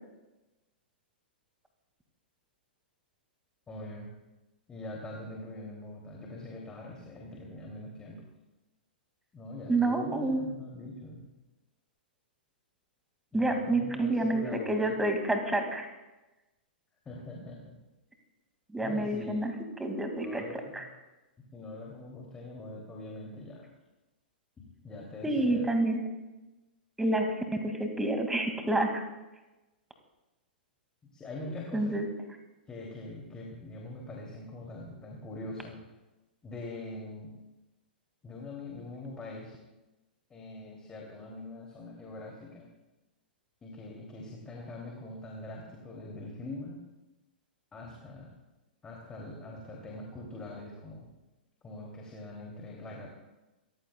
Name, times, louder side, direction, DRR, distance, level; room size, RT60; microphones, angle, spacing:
voice 1, 3.7-4.1 4.7-8.2 9.3-11.2 13.3-15.0 17.1-17.7 18.8-19.5 20.2-20.8 21.5-23.7 24.8-25.7 31.1-32.0 32.7-35.8 36.4-37.3 38.2-39.6 40.3-42.7 43.6-46.8 47.7-48.3 48.8-51.1 51.6-53.1, left 2 dB, 15° left, -2 dB, 2.7 m, -43 dB
voice 2, 9.7-10.4 13.3-15.9 18.7-19.5 19.8-20.4 20.7-20.8 25.2-26.0 27.0-27.3 27.6-29.0 31.7-32.1, right 2 dB, 5° right, 5 dB, 2.0 m, -28 dB
29.0 x 14.5 x 2.3 m, 1.1 s
figure-of-eight pair, 105°, 6 cm